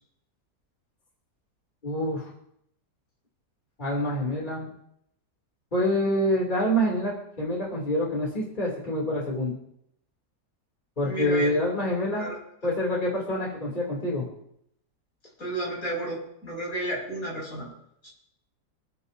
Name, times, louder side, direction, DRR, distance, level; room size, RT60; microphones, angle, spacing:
voice 1, 1.8-2.3 3.8-4.7 5.7-9.6 11.0-12.3 12.6-14.3, equal, 25° left, -3 dB, 3.2 m, -26 dB
voice 2, 11.0-11.5 12.1-12.4 12.6-12.7 15.4-17.7 18.0-18.1, right 1 dB, 55° left, -3 dB, 6.6 m, -32 dB
27.5 x 9.6 x 2.8 m, 0.74 s
omnidirectional pair, 1.8 m